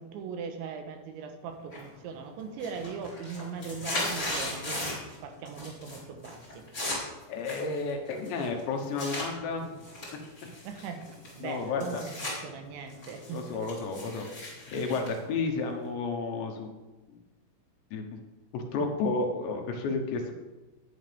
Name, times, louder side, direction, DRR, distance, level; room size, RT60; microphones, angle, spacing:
voice 1, 0.0-6.7 10.6-11.1 11.4-14.3 15.1-15.2, right 5 dB, 80° right, 6 dB, 3.3 m, -40 dB
sound 1, 1.7-2.1 2.4-5.2 5.5-6.0 6.2-9.3 9.8-12.4 12.7-15.9, left 1 dB, 15° left, 4.1 m, -37 dB
voice 2, 7.3-9.8 11.4-12.0 13.3-16.7 17.1-17.2 17.9-18.0 18.5-20.3, left 4 dB, 75° left, 3 dB, 3.4 m, -32 dB
17.5 x 9.4 x 3.5 m, 1.2 s
omnidirectional pair, 5.4 m